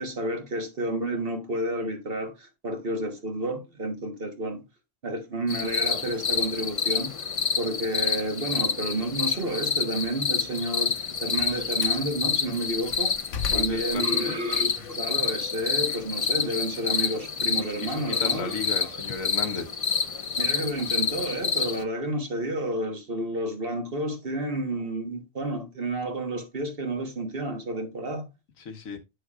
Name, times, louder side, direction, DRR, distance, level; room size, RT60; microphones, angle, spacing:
voice 1, 0.0-4.6 5.0-7.1 7.6-13.2 13.5-19.0 20.4-28.3, right 1 dB, 45° right, 1.5 m, -30 dB
sound 1, 5.5-21.8, left 5 dB, 40° left, 0.5 m, -28 dB
Slam, 10.9-12.1 12.6-15.0 15.4-17.8, left 7 dB, 70° left, 1.1 m, -39 dB
voice 2, 13.5-14.4 14.8-14.9 17.6-19.7 28.6-29.0, left 5 dB, 85° left, 1.6 m, -35 dB
8.4 x 6.4 x 2.4 m
omnidirectional pair, 1.4 m